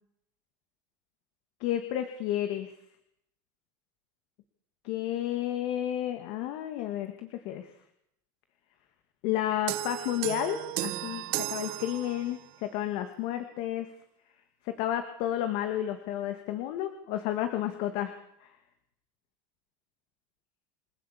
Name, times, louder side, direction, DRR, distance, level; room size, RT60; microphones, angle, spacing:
voice 1, 1.6-2.7 4.8-7.7 9.2-13.9 14.6-18.1 18.4-18.5, left 12 dB, 65° left, 7 dB, 2.4 m, -31 dB
sound 1, 9.7-12.6, right 16 dB, 60° right, 1.4 m, -34 dB
28.5 x 14.5 x 8.6 m, 0.77 s
supercardioid pair, 110°, 11 cm